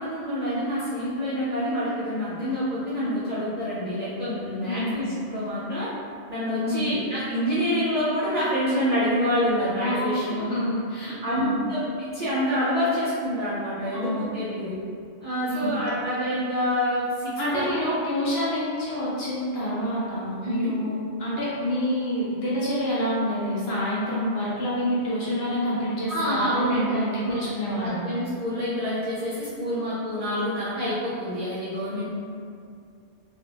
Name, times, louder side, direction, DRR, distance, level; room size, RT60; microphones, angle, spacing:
voice 1, 0.0-5.9 6.3-10.4 11.2-14.7 15.2-17.7 20.4-20.7 26.1-26.8 27.2-27.4 27.8-32.1, equal, 60° right, -10 dB, 0.4 m, -27 dB
voice 2, 4.6-5.0 6.6-6.9 9.8-11.6 13.9-14.7 15.5-15.7 17.4-28.0, equal, 65° left, -7 dB, 0.7 m, -27 dB
2.4 x 2.1 x 2.8 m, 2.4 s
omnidirectional pair, 1.3 m